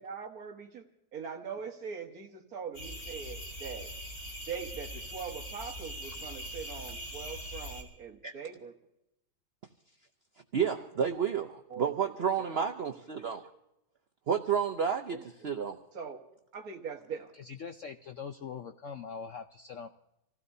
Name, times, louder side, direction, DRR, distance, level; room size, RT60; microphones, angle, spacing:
voice 1, 0.0-3.9 4.5-8.7 11.7-12.7 15.1-15.5 15.9-16.2 16.5-17.3, right 6 dB, 50° right, 3 dB, 1.7 m, -42 dB
sound 1, 2.7-7.8, equal, 50° left, 3.4 m, -42 dB
voice 2, 10.5-13.4 14.3-15.2 15.4-15.8, right 7 dB, 70° right, 4 dB, 0.6 m, -30 dB
voice 3, 17.6-19.9, left 6 dB, 80° left, 6 dB, 0.6 m, -42 dB
27.0 x 16.0 x 2.7 m, 0.85 s
omnidirectional pair, 2.1 m